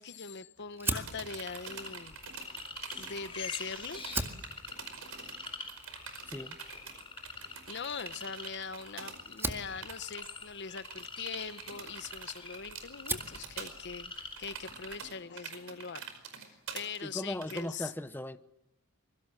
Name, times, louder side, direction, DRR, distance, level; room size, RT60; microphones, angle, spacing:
voice 1, 0.0-2.2 3.0-4.0 7.7-14.1 14.4-16.0 16.4-17.9, left 5 dB, 55° left, 1.0 m, -42 dB
sound 1, 0.6-9.2 9.5-9.6 9.8-10.3 10.8-17.6, right 6 dB, 85° right, 5.1 m, -46 dB
Fire, 0.8-3.4 3.9-12.5 12.8-13.4, right 2 dB, 10° right, 2.0 m, -41 dB
sound 2, 1.5-15.0, left 4 dB, 25° left, 4.6 m, -46 dB
voice 2, 6.3-6.6 17.0-18.4, left 1 dB, 10° left, 0.9 m, -38 dB
25.5 x 23.0 x 7.5 m
head